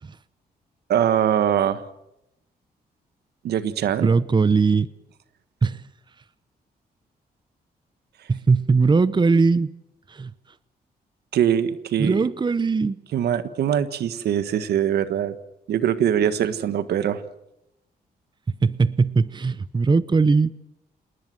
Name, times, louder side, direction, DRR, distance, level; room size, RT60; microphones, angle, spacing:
voice 1, 0.9-1.8 3.4-4.1 11.3-12.3 13.1-15.3 15.7-17.2, right 9 dB, 85° right, 12 dB, 1.5 m, -22 dB
voice 2, 4.0-4.9 5.6-5.8 8.3-9.7 10.1-10.3 12.0-13.0 18.6-20.5, right 4 dB, 30° right, 17 dB, 0.8 m, -19 dB
27.5 x 19.5 x 7.8 m, 0.86 s
cardioid pair, 80°, 16 cm